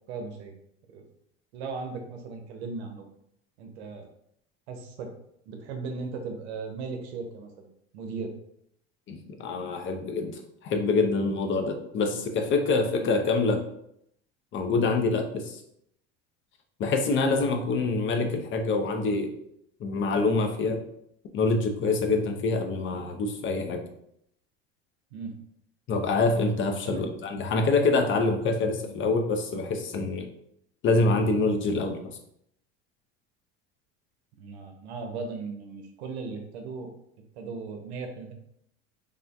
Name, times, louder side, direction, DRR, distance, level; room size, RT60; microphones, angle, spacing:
voice 1, 0.1-0.5 0.9-1.1 1.5-3.1 3.6-4.1 4.7-5.1 5.5-7.7 7.9-8.3 13.0-13.1 25.1-25.3 26.8-27.1 34.4-36.9 37.3-38.3, right 4 dB, 90° right, 4 dB, 0.6 m, -37 dB
voice 2, 9.1-13.6 14.5-15.6 16.8-19.3 19.8-20.8 21.3-23.8 25.9-30.3 30.8-32.0, left 3 dB, 40° left, 5 dB, 0.5 m, -26 dB
3.5 x 2.5 x 2.2 m, 0.74 s
supercardioid pair, 95°, 32 cm